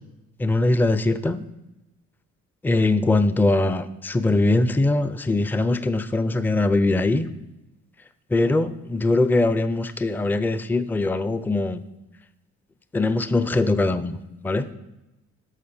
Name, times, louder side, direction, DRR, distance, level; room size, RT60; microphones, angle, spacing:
voice 1, 0.4-1.4 2.6-7.3 8.3-11.8 12.9-14.2 14.4-14.7, left 2 dB, 5° left, 13 dB, 0.4 m, -21 dB
11.0 x 6.4 x 4.3 m, 0.96 s
cardioid pair, 90°, 30 cm